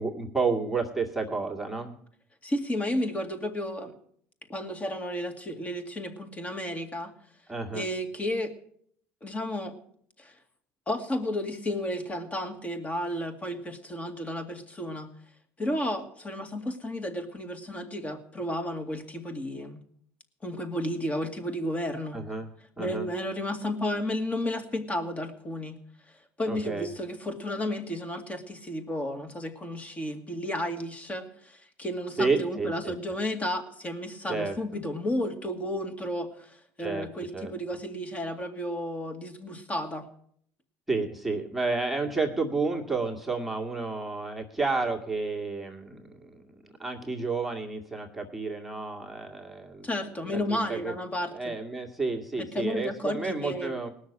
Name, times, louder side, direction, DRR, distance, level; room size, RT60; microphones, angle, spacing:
voice 1, 0.0-1.9 7.5-7.9 22.1-22.5 22.8-23.1 26.5-26.9 32.2-32.9 34.3-34.6 36.8-37.1 37.3-37.5 40.9-49.9 50.2-51.0 51.3-53.9, right 4 dB, ahead, -1 dB, 2.0 m, -31 dB
voice 2, 2.4-3.9 4.5-7.1 7.7-8.5 9.2-9.8 10.2-10.3 10.9-15.1 15.6-19.8 20.4-22.2 22.8-25.8 26.4-40.1 49.8-51.5 52.4-53.7, left 1 dB, 25° left, 7 dB, 2.2 m, -32 dB
19.0 x 6.5 x 8.7 m, 0.64 s
supercardioid pair, 100°, 6 cm